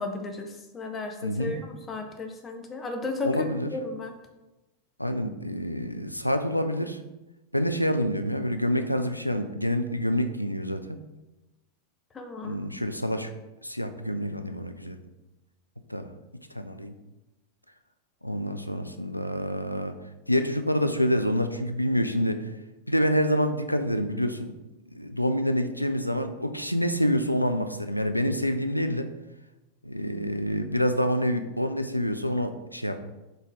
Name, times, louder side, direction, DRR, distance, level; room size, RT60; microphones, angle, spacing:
voice 1, 0.0-4.1 12.1-12.6, left 3 dB, 20° left, 4 dB, 0.6 m, -34 dB
voice 2, 1.2-1.6 3.2-3.7 5.0-7.0 7.5-11.0 12.4-13.3 13.6-15.0 15.9-16.1 16.5-16.9 18.2-19.9 20.3-22.4 22.9-24.5 24.9-29.1 29.8-33.0, equal, 90° left, 8 dB, 0.3 m, -27 dB
4.0 x 3.5 x 3.7 m, 1.0 s
figure-of-eight pair, 90°, 0 cm